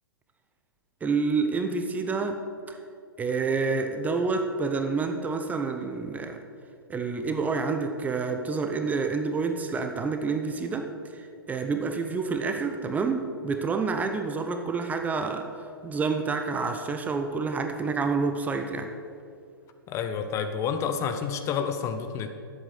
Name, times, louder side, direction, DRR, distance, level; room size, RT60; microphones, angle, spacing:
voice 1, 1.0-2.4 2.7-2.8 3.2-6.4 6.9-10.9 11.1-18.9, right 4 dB, 10° right, 6 dB, 0.7 m, -28 dB
voice 2, 19.9-22.3, left 6 dB, 25° left, 8 dB, 0.7 m, -29 dB
11.0 x 8.1 x 6.6 m, 2.4 s
figure-of-eight pair, 120°, 12 cm